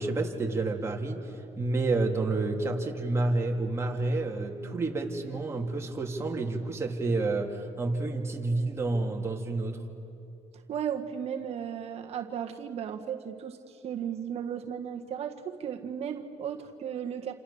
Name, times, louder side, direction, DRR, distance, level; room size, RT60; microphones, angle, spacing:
voice 1, 0.0-9.8, right 2 dB, 20° right, 0 dB, 3.3 m, -29 dB
voice 2, 10.7-17.3, right 8 dB, 60° right, 4 dB, 1.6 m, -35 dB
28.5 x 27.0 x 7.2 m, 2.7 s
cardioid pair, 105°, 12 cm